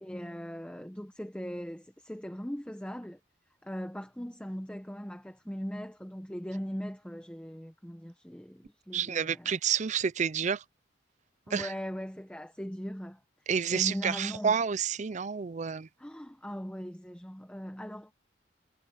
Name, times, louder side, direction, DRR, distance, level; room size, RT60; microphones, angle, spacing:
voice 1, 0.0-3.2 3.6-9.5 11.5-13.2 13.7-14.6 16.0-18.1, equal, 5° left, 0.9 m, -39 dB
voice 2, 8.9-10.6 11.5-11.7 13.5-15.9, right 7 dB, 40° right, 0.5 m, -29 dB
head